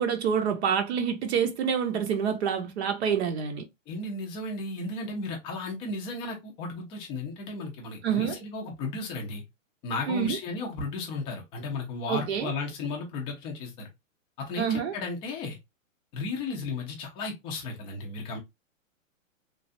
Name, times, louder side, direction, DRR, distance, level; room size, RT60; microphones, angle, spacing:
voice 1, 0.0-3.7 8.0-8.4 10.1-10.4 12.1-12.5 14.6-14.9, right 7 dB, 55° right, 0.7 m, -27 dB
voice 2, 3.9-9.4 9.8-13.9 14.4-15.6 16.1-18.4, left 3 dB, 15° left, 0.5 m, -34 dB
3.2 x 2.4 x 2.5 m
hypercardioid pair, 145°, 40 cm